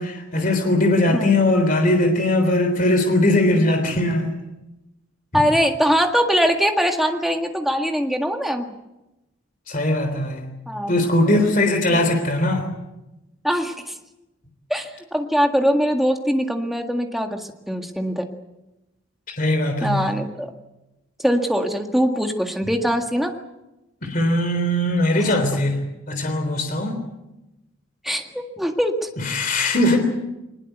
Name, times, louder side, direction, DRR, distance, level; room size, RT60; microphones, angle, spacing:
voice 1, 0.0-4.2 9.7-10.4 10.9-12.6 19.4-20.1 24.0-25.8 26.1-27.0 29.2-30.0, left 1 dB, 40° left, 5 dB, 3.5 m, -20 dB
voice 2, 5.3-8.7 10.7-11.4 11.9-12.0 13.4-14.0 14.7-18.2 19.8-20.5 21.2-23.3 25.2-25.3 28.0-29.1, equal, ahead, 3 dB, 1.8 m, -22 dB
23.0 x 20.5 x 8.1 m, 0.97 s
head